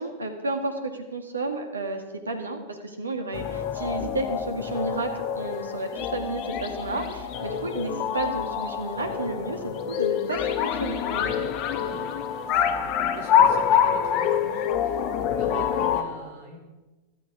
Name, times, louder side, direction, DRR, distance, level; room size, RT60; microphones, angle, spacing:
voice 1, 0.0-11.3, right 2 dB, 75° right, 5 dB, 1.9 m, -32 dB
sound 1, 3.3-16.0, left 8 dB, 40° left, 1.2 m, -26 dB
voice 2, 11.7-16.6, right 2 dB, 50° right, 0 dB, 4.5 m, -43 dB
14.0 x 13.5 x 4.8 m, 1.2 s
figure-of-eight pair, 90°, 0 cm